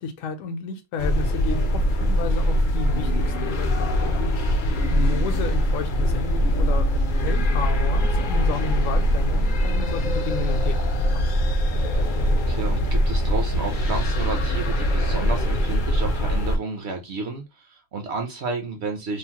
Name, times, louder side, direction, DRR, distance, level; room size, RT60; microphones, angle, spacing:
voice 1, 0.0-3.7 4.0-4.3 4.7-10.8 11.1-11.3, left 5 dB, 75° left, 0.9 m, -32 dB
sound 1, 1.0-16.6, equal, 55° left, 0.5 m, -22 dB
voice 2, 12.5-19.2, right 3 dB, 60° right, 0.8 m, -31 dB
3.1 x 2.0 x 2.8 m
omnidirectional pair, 1.5 m